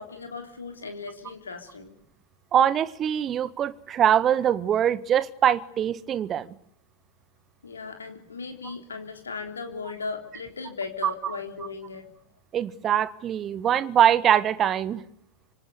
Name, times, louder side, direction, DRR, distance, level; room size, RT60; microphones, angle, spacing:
voice 1, 0.0-1.9 7.6-12.1, left 4 dB, 75° left, 3.6 m, -37 dB
voice 2, 2.5-6.5 11.0-11.1 12.5-15.0, right 9 dB, 25° right, 1.5 m, -23 dB
27.0 x 25.5 x 8.3 m
figure-of-eight pair, 90°, 0 cm